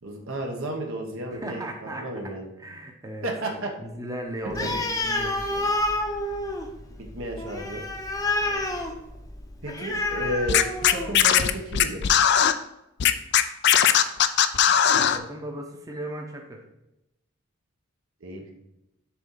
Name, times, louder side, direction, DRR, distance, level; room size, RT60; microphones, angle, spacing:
voice 1, 0.0-2.5 3.2-3.7 4.6-4.8 7.0-7.8 9.6-10.6 10.9-12.0 18.2-18.4, right 1 dB, 70° right, 1 dB, 1.2 m, -32 dB
voice 2, 1.3-2.0 2.6-5.8 6.0-6.1 8.4-8.8 14.9-16.6, right 1 dB, 15° right, 2 dB, 0.8 m, -37 dB
Animal, 4.5-11.2, left 2 dB, 15° left, 0.7 m, -29 dB
Scratching (performance technique), 10.5-12.5 13.0-15.2, left 9 dB, 50° left, 0.4 m, -19 dB
6.9 x 3.9 x 5.5 m, 0.89 s
head